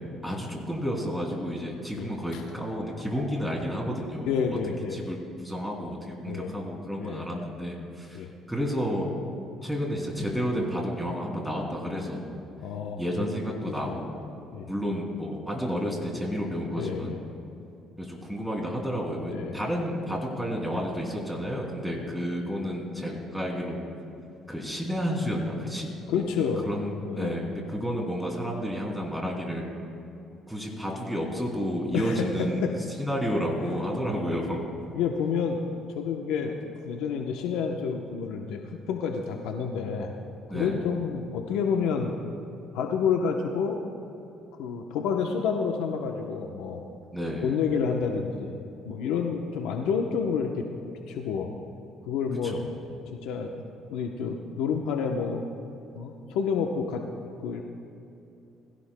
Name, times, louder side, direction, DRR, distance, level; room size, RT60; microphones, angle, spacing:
voice 1, 0.2-4.5 4.9-9.1 9.6-12.4 13.0-14.4 14.7-17.1 18.0-23.8 24.5-26.3 26.7-29.7 30.5-32.6 33.0-34.6 40.5-40.8 47.1-47.6 52.4-52.6, equal, 5° right, -1 dB, 2.8 m, -31 dB
voice 2, 1.9-2.4 4.3-5.0 6.3-6.5 7.0-7.2 8.1-8.3 12.6-13.3 13.8-13.9 14.5-14.7 16.8-17.2 19.3-19.6 26.1-26.7 27.0-27.4 31.9-32.7 34.9-35.6 35.9-40.1 40.5-42.1 42.7-43.8 44.6-46.8 47.4-48.6 48.9-50.7 51.1-51.5 52.0-52.6 53.2-53.5 53.9-55.4 55.9-57.0 57.4-57.6, left 6 dB, 90° left, 2 dB, 0.8 m, -29 dB
20.5 x 16.5 x 2.2 m, 2.7 s
cardioid pair, 115°, 0 cm